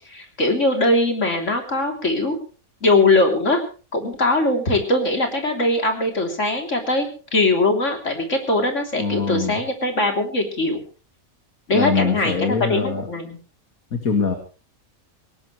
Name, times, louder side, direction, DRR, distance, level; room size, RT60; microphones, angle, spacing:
voice 1, 0.1-2.4 2.8-3.6 3.9-7.1 7.3-10.8 11.7-13.4, left 2 dB, 60° left, 3 dB, 3.7 m, -21 dB
voice 2, 9.0-9.6 11.7-13.1 13.9-14.4, left 5 dB, 80° left, 5 dB, 2.4 m, -23 dB
19.5 x 18.5 x 3.2 m, 0.35 s
omnidirectional pair, 1.5 m